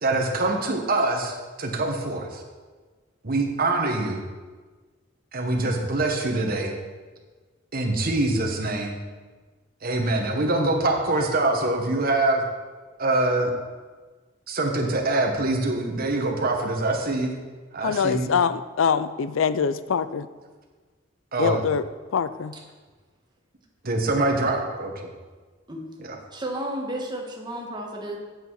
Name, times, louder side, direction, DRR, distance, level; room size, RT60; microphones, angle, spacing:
voice 1, 0.0-2.4 3.2-4.2 5.3-6.8 7.7-9.0 9.8-12.4 13.0-13.5 14.5-17.3 17.7-18.3 21.3-21.6 23.8-25.1 26.0-26.2, right 2 dB, 50° right, 2 dB, 1.3 m, -24 dB
voice 2, 17.8-20.3 21.4-21.8 22.1-22.5, left 6 dB, 80° left, 14 dB, 0.4 m, -24 dB
voice 3, 26.3-28.2, right 1 dB, 25° right, 0 dB, 1.5 m, -32 dB
8.8 x 7.9 x 4.7 m, 1.4 s
head